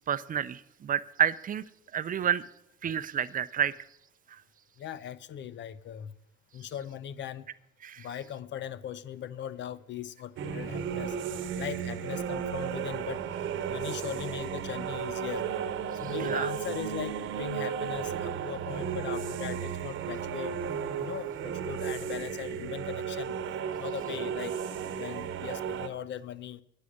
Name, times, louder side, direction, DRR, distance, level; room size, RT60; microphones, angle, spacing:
voice 1, 0.1-1.6 1.9-2.4 2.8-3.7 7.8-8.1 16.2-16.5, right 9 dB, 45° right, 0.5 m, -29 dB
voice 2, 4.8-6.1 6.5-7.5 8.0-11.2 11.6-13.3 13.7-15.5 15.9-20.6 21.0-23.4 23.8-24.6 25.0-26.6, left 9 dB, 65° left, 0.6 m, -39 dB
sound 1, 10.4-25.9, right 8 dB, 75° right, 1.0 m, -34 dB
9.8 x 8.2 x 6.3 m
cardioid pair, 90°, 20 cm